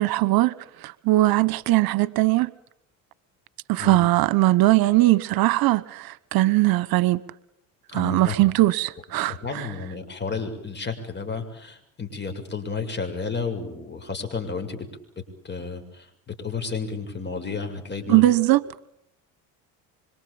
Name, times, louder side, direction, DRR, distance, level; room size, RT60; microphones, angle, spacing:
voice 1, 0.0-2.5 3.7-7.2 7.9-9.7 18.1-18.6, right 17 dB, 70° right, 1.2 m, -20 dB
voice 2, 7.9-8.5 9.3-14.9 15.2-18.2, left 5 dB, 30° left, 7.2 m, -32 dB
26.0 x 26.0 x 8.8 m
cardioid pair, 105°, 37 cm